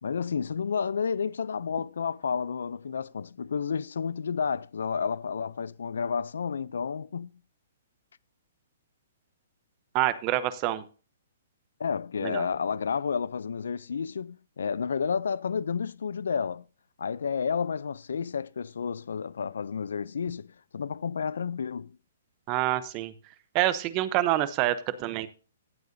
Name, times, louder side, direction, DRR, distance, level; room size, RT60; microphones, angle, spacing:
voice 1, 0.0-7.3 11.8-16.6 17.0-22.0, left 6 dB, 85° left, 0.4 m, -31 dB
voice 2, 9.9-10.8 12.2-12.4 22.5-23.1 23.5-25.3, right 14 dB, 25° right, 0.7 m, -27 dB
15.5 x 7.9 x 2.6 m
hypercardioid pair, 165°, 0 cm